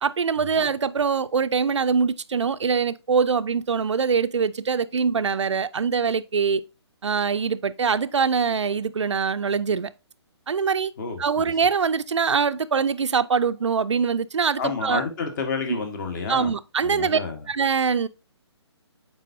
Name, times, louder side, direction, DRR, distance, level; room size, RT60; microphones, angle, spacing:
voice 1, 0.0-6.6 7.0-9.9 10.5-10.9 11.2-15.0 15.7-15.8 16.3-17.2 17.5-18.1, right 6 dB, 85° right, 0.5 m, -23 dB
voice 2, 14.6-16.5 16.8-17.4, left 5 dB, 40° left, 1.6 m, -30 dB
7.5 x 4.8 x 2.7 m
figure-of-eight pair, 145°, 15 cm